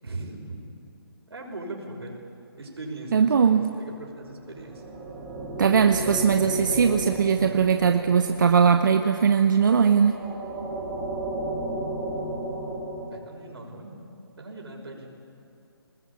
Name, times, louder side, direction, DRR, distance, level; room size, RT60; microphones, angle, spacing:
voice 1, 0.0-0.6 1.3-2.3 2.6-4.8 13.1-14.0 14.4-15.1, right 2 dB, 80° right, 1 dB, 6.1 m, -39 dB
voice 2, 3.1-3.7 5.6-10.2, right 6 dB, 50° right, 7 dB, 0.9 m, -20 dB
sound 1, 4.2-13.1, right 1 dB, 10° right, 3.1 m, -34 dB
22.5 x 20.0 x 8.6 m, 2.7 s
hypercardioid pair, 165°, 13 cm